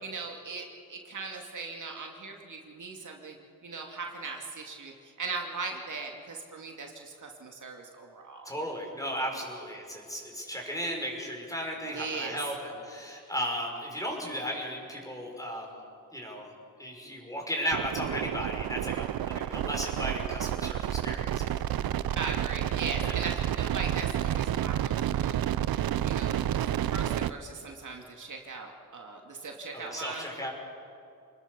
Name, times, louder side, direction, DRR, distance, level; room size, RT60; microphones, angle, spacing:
voice 1, 0.0-3.4 3.6-8.5 11.8-12.4 22.2-25.4 26.0-30.2, right 4 dB, 60° right, 1 dB, 2.6 m, -39 dB
voice 2, 8.4-15.8 16.1-16.5 16.8-21.6 23.0-23.3 29.7-30.5, equal, 10° left, 0 dB, 5.8 m, -35 dB
sound 1, 17.7-27.3, right 11 dB, 85° right, 0.7 m, -30 dB
28.0 x 20.5 x 7.0 m, 2.6 s
wide cardioid pair, 105°, 35 cm